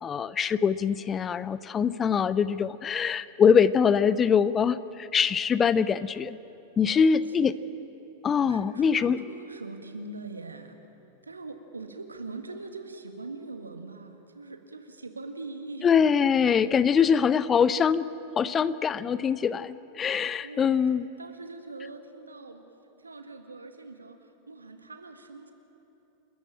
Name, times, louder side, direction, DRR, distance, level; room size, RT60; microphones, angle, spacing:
voice 1, 0.0-6.4 6.8-7.5 8.2-9.2 15.8-18.1 18.4-21.0, left 7 dB, 25° left, 17 dB, 0.6 m, -23 dB
voice 2, 8.4-10.9 11.2-15.9 16.5-17.1 20.4-20.8 21.2-22.6 23.0-25.5, right 3 dB, 80° right, 7 dB, 1.7 m, -42 dB
29.5 x 13.5 x 8.8 m, 2.9 s
figure-of-eight pair, 90°, 0 cm